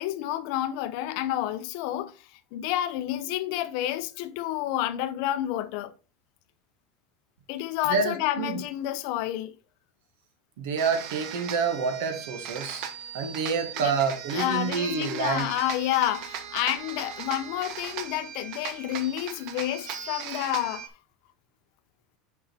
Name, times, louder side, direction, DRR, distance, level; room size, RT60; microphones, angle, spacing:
voice 1, 0.0-2.1 2.5-5.9 7.5-9.5 13.8-14.0 14.3-20.9, left 13 dB, 50° left, 0.7 m, -29 dB
voice 2, 7.8-8.6 10.6-12.8 13.1-15.5, right 5 dB, 80° right, 1.9 m, -28 dB
sound 1, 10.8-20.9, right 8 dB, 45° right, 0.9 m, -38 dB
6.3 x 5.7 x 4.3 m
cardioid pair, 180°, 0 cm